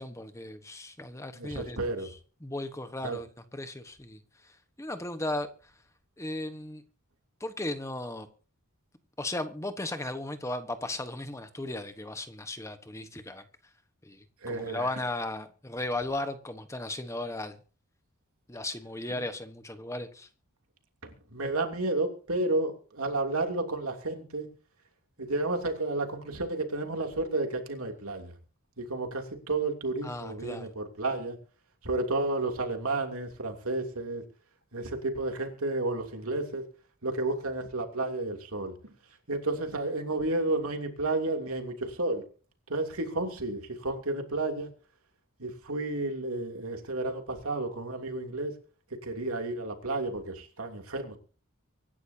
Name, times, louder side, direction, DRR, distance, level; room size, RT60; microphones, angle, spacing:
voice 1, 0.0-4.5 4.8-5.5 6.2-6.8 7.4-8.3 9.2-13.4 14.0-17.6 18.5-20.3 30.0-30.7, left 2 dB, 15° left, 1.2 m, -36 dB
voice 2, 1.3-2.1 3.0-3.2 14.4-14.9 19.1-19.2 21.0-24.5 25.2-28.3 28.8-31.4 31.8-34.2 34.7-36.6 37.0-38.7 39.3-42.2 42.7-44.7 45.4-48.5 49.0-51.2, right 2 dB, 80° right, 3.0 m, -31 dB
24.5 x 12.0 x 2.9 m
head